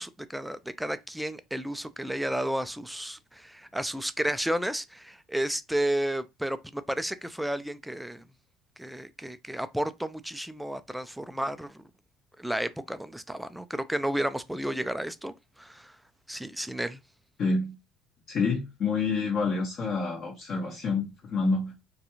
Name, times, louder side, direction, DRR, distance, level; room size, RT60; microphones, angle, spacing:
voice 1, 0.0-8.2 8.8-11.8 12.4-15.9 16.3-17.0, right 1 dB, 5° right, 0.3 m, -32 dB
voice 2, 17.4-17.7 18.3-21.7, left 4 dB, 50° left, 0.9 m, -28 dB
2.4 x 2.3 x 2.9 m
supercardioid pair, 90°, 0 cm